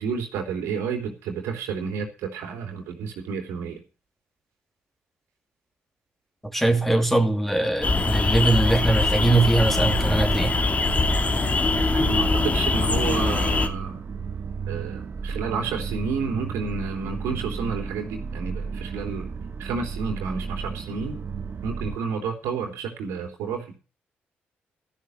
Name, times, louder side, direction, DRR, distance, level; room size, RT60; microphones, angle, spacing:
voice 1, 0.0-3.8 11.9-14.0 14.7-19.3 19.6-21.2 21.6-23.7, right 5 dB, 80° right, 3.4 m, -30 dB
voice 2, 6.4-10.5, right 2 dB, 5° left, 2.8 m, -21 dB
sound 1, 7.8-13.7, left 3 dB, 30° left, 2.5 m, -23 dB
sound 2, 9.1-22.0, right 5 dB, 50° right, 1.1 m, -33 dB
14.0 x 6.5 x 8.1 m
supercardioid pair, 55°, 5 cm